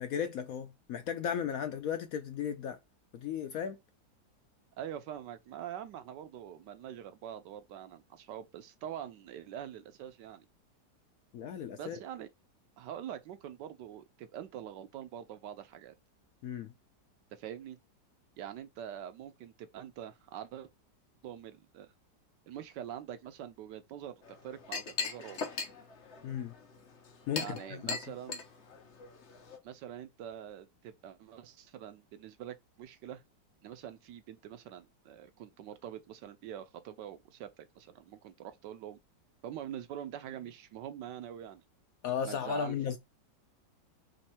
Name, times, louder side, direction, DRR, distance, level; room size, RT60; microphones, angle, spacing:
voice 1, 0.0-2.8 3.1-3.8 11.3-12.0 16.4-16.7 26.2-26.5 27.3-28.0 42.0-43.0, left 8 dB, 70° left, 0.9 m, -35 dB
voice 2, 4.8-10.5 11.8-12.3 12.8-15.9 17.3-17.8 18.4-20.7 21.2-21.9 22.5-25.4 27.3-28.4 29.6-33.2 33.6-39.0 39.4-41.6 42.2-42.8, right 10 dB, 80° right, 1.3 m, -44 dB
Chink clink, 24.2-29.6, left 4 dB, 50° left, 1.0 m, -40 dB
3.6 x 3.1 x 4.3 m
omnidirectional pair, 1.9 m